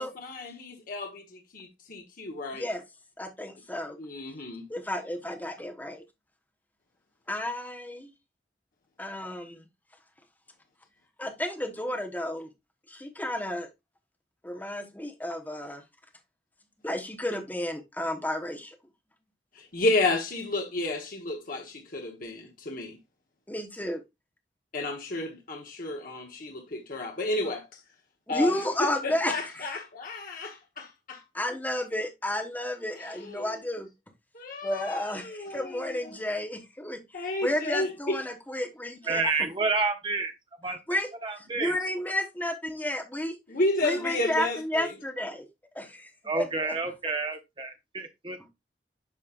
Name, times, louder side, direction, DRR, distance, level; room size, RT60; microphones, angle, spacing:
voice 1, 0.0-2.7 4.0-4.6 19.5-23.0 24.7-27.8 28.3-31.2 32.9-33.7 34.3-36.2 37.1-38.2 43.5-45.0, left 2 dB, 50° left, 1.2 m, -32 dB
voice 2, 3.2-4.0 4.7-6.0 7.3-8.1 9.0-9.6 11.2-12.5 12.9-13.7 14.4-15.8 16.8-18.7 23.5-24.0 28.3-29.3 31.3-33.9 34.6-37.0 37.4-39.2 40.9-41.1 41.6-43.4 43.8-45.5 45.7-46.1 46.3-46.5, left 1 dB, 10° left, 1.1 m, -31 dB
voice 3, 39.1-40.3 40.6-40.8 41.2-41.8 46.2-48.5, right 3 dB, 30° right, 1.2 m, -29 dB
9.1 x 5.3 x 2.5 m
head